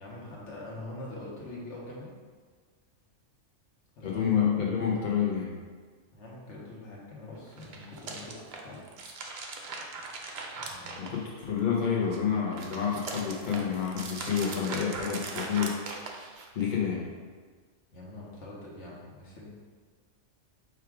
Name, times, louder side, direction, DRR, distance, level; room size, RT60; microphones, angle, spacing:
voice 1, 0.0-2.1 4.0-4.4 6.1-8.8 10.6-11.1 17.9-19.5, left 2 dB, 65° left, -5 dB, 1.3 m, -44 dB
voice 2, 4.0-5.6 11.0-16.1 16.5-17.1, left 7 dB, 45° left, -4 dB, 0.8 m, -29 dB
sound 1, 7.5-11.6 12.0-16.6, right 3 dB, 60° right, 0.7 m, -40 dB
4.7 x 2.4 x 4.7 m, 1.5 s
omnidirectional pair, 1.3 m